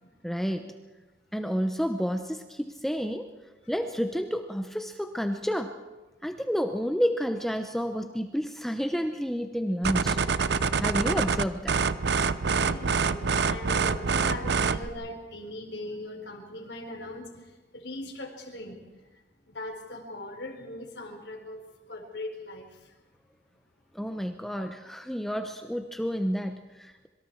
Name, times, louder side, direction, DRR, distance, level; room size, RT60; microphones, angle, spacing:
voice 1, 0.2-0.7 1.3-3.3 3.7-5.7 6.2-10.2 10.8-11.8 23.9-27.1, equal, ahead, 6 dB, 0.8 m, -30 dB
sound 1, 9.8-14.9, right 5 dB, 75° right, 0.7 m, -26 dB
voice 2, 12.4-17.4 17.7-18.8 19.5-21.6 21.9-22.7, left 1 dB, 80° left, 4 dB, 4.0 m, -40 dB
25.5 x 23.5 x 4.6 m, 1.2 s
head